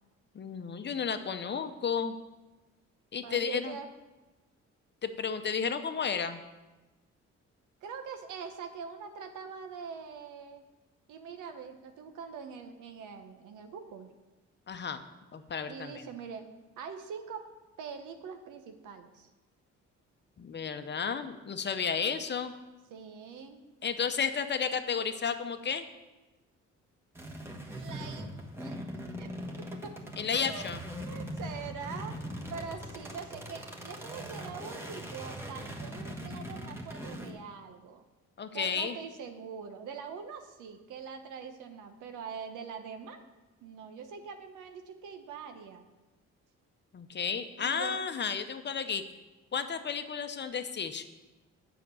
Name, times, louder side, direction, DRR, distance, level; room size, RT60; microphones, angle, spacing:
voice 1, 0.3-2.1 3.1-3.8 5.0-6.4 14.7-15.0 15.3-15.9 20.4-22.5 23.8-25.8 30.2-30.8 38.4-39.0 46.9-49.0 49.5-51.0, left 6 dB, 35° left, 9 dB, 0.8 m, -32 dB
voice 2, 3.2-3.9 7.8-10.6 11.1-14.1 15.7-16.5 16.8-17.5 17.8-19.3 22.9-23.6 27.7-28.7 29.1-29.3 29.6-30.0 30.4-30.7 31.0-32.2 32.5-38.0 38.5-43.3 43.6-45.8 47.6-48.0, right 6 dB, 80° right, 6 dB, 0.9 m, -43 dB
sound 1, 27.1-37.3, equal, 10° right, 1.3 m, -41 dB
7.6 x 6.0 x 6.9 m, 1.1 s
cardioid pair, 90°, 30 cm